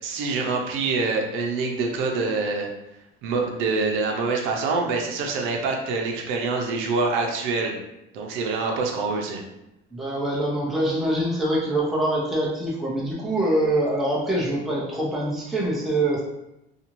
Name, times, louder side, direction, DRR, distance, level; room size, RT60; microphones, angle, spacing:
voice 1, 0.0-2.7 3.2-7.8 8.1-9.4, right 3 dB, 70° right, 1 dB, 0.6 m, -25 dB
voice 2, 9.9-16.2, right 1 dB, ahead, -5 dB, 0.4 m, -24 dB
2.6 x 2.4 x 2.9 m, 0.89 s
cardioid pair, 175°, 21 cm